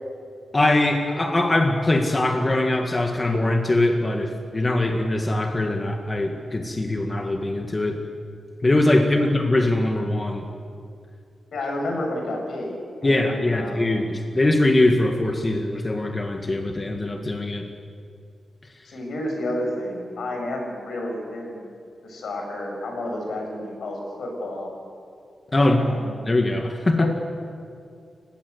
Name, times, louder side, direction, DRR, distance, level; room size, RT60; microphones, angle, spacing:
voice 1, 0.5-8.0 8.6-10.4 13.0-17.7 25.5-25.8 26.3-27.1, left 2 dB, 25° left, 3 dB, 1.8 m, -22 dB
voice 2, 11.5-13.2 13.5-14.1 18.8-21.6 22.0-24.7 25.6-26.1 27.0-27.1, left 1 dB, 75° left, 1 dB, 7.0 m, -31 dB
30.0 x 16.5 x 8.2 m, 2.4 s
wide cardioid pair, 140°, 0 cm